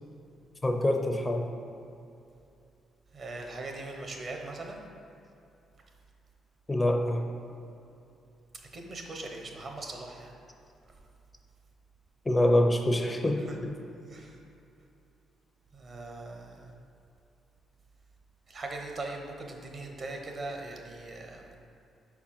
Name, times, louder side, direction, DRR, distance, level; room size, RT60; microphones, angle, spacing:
voice 1, 0.6-1.4 6.7-7.2 12.3-13.7, left 1 dB, 20° left, 4 dB, 0.5 m, -25 dB
voice 2, 3.1-4.8 8.5-10.3 13.5-13.6 14.1-14.4 15.7-16.7 18.5-21.6, right 2 dB, 45° right, 2 dB, 0.9 m, -40 dB
4.7 x 4.3 x 5.7 m, 2.6 s
cardioid pair, 90°, 0 cm